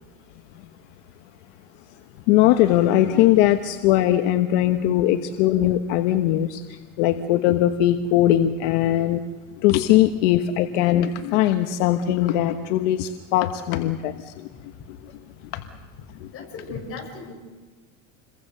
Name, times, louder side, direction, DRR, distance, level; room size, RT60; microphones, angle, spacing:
voice 1, 2.3-9.2 9.6-14.5 14.9-15.0 15.5-15.6 16.2-16.3, left 13 dB, 70° left, 7 dB, 1.3 m, -20 dB
voice 2, 16.3-17.3, left 4 dB, 40° left, 1 dB, 7.8 m, -36 dB
28.5 x 23.0 x 6.8 m, 1.4 s
supercardioid pair, 130°, 36 cm